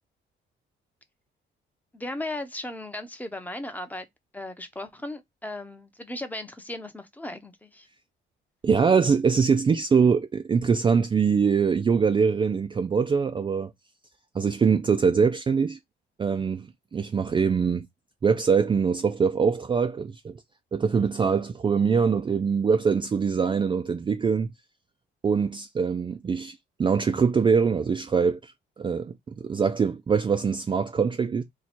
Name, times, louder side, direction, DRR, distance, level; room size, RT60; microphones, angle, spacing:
voice 1, 1.9-4.1 4.3-7.9, left 1 dB, 10° left, 0.6 m, -36 dB
voice 2, 8.6-13.7 14.3-15.8 16.2-17.8 18.2-20.4 20.7-24.5 25.2-31.4, right 6 dB, 25° right, 0.3 m, -23 dB
2.8 x 2.3 x 4.2 m
cardioid pair, 90°, 20 cm